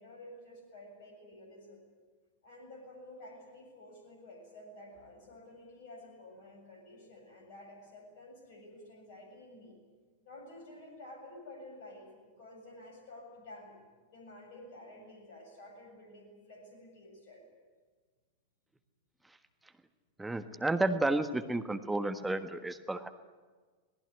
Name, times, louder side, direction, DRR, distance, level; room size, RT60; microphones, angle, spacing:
voice 1, 0.0-1.8 2.4-9.8 10.2-13.8 14.1-17.4, left 1 dB, 50° left, 2 dB, 7.2 m, -51 dB
voice 2, 20.2-23.1, right 2 dB, 5° right, 8 dB, 1.4 m, -31 dB
26.0 x 19.5 x 9.7 m, 1.4 s
figure-of-eight pair, 90°, 0 cm